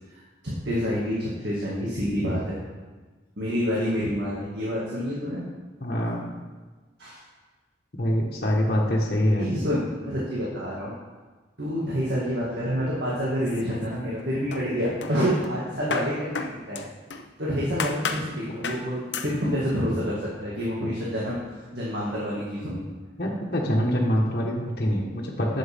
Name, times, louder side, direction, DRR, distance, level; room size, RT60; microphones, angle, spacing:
voice 1, 0.1-2.6 3.4-5.4 7.0-7.2 9.4-10.9 11.6-16.9 17.4-21.4 21.7-22.9, equal, 70° right, -6 dB, 2.2 m, -28 dB
voice 2, 5.8-6.4 8.0-9.6 23.2-25.6, equal, 60° left, -4 dB, 1.5 m, -25 dB
sound 1, 13.4-14.2 14.5-17.3 17.8-18.3 18.6-18.9 19.1-19.4, left 4 dB, 85° left, 0.8 m, -33 dB
11.5 x 7.8 x 3.6 m, 1.3 s
head